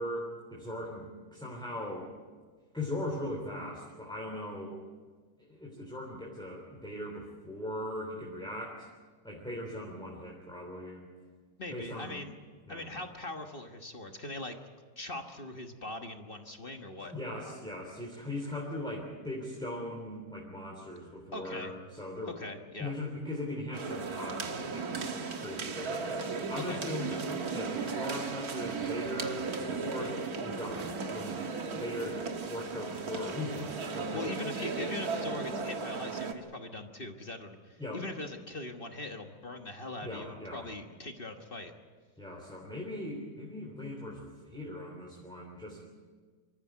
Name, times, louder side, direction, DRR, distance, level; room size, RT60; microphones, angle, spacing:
voice 1, 0.0-2.1 2.7-4.8 5.4-8.9 9.2-11.1 11.7-12.2 12.7-12.9 17.0-22.5 22.8-25.1 25.4-27.1 27.5-31.4 31.7-32.2 32.5-34.4 37.8-38.0 40.0-40.7 42.2-45.8, left 1 dB, ahead, -2 dB, 3.3 m, -39 dB
voice 2, 11.6-12.3 12.7-14.6 15.0-17.1 21.3-21.7 22.3-22.9 26.6-27.2 34.1-41.7, left 2 dB, 35° left, 5 dB, 1.4 m, -41 dB
sound 1, 23.7-36.3, right 4 dB, 55° right, 1.9 m, -36 dB
25.5 x 14.5 x 9.3 m, 1.5 s
omnidirectional pair, 2.0 m